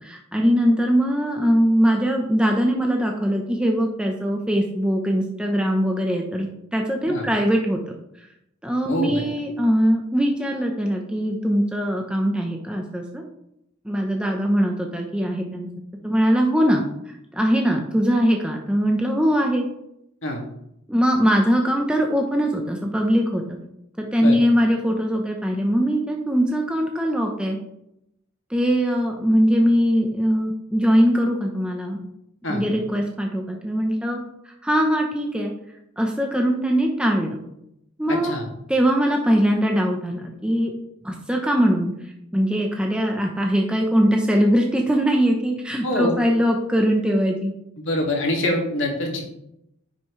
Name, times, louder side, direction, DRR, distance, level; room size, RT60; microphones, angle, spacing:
voice 1, 0.0-7.8 8.6-13.2 13.8-15.7 16.0-16.8 17.3-19.7 20.9-23.4 24.0-27.6 28.5-32.0 32.5-34.2 34.6-35.5 36.0-37.4 38.0-38.3 38.7-40.7 41.0-41.9 42.3-47.5, equal, 5° right, 1 dB, 0.8 m, -21 dB
voice 2, 8.9-9.2 20.2-20.4 24.2-24.4 32.4-32.6 38.1-38.5 45.8-46.1 47.8-49.2, left 1 dB, 65° left, 0 dB, 2.1 m, -25 dB
10.5 x 6.1 x 3.2 m, 0.80 s
head